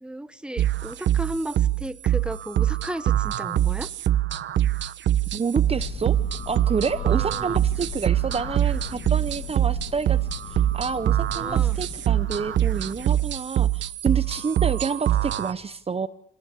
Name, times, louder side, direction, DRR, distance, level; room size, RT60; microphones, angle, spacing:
voice 1, 0.0-3.9 6.9-7.6 9.5-9.7 11.3-11.8, right 1 dB, 5° right, 13 dB, 1.3 m, -35 dB
sound 1, 0.6-15.5, right 12 dB, 65° right, 1.1 m, -24 dB
voice 2, 5.3-6.2 6.5-10.2 10.4-16.1, right 5 dB, 30° right, 13 dB, 0.9 m, -29 dB
Thunder, 5.7-13.5, left 7 dB, 70° left, 2.7 m, -38 dB
26.0 x 19.0 x 8.5 m, 0.71 s
cardioid pair, 90°, 20 cm